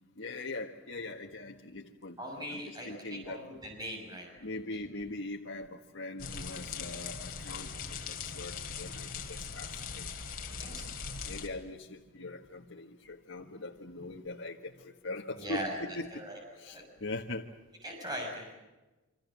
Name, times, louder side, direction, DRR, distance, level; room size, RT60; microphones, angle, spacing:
voice 1, 0.2-3.4 4.4-10.1 11.3-16.1 16.6-17.5, left 2 dB, 60° left, 0 dB, 1.5 m, -41 dB
voice 2, 2.2-4.3 10.5-11.0 15.4-15.7 16.1-16.4 16.7-16.8 17.8-18.5, equal, 20° right, 1 dB, 6.5 m, -40 dB
sound 1, 6.2-11.5, left 5 dB, 45° left, 3.1 m, -40 dB
28.0 x 26.0 x 7.4 m, 1.1 s
head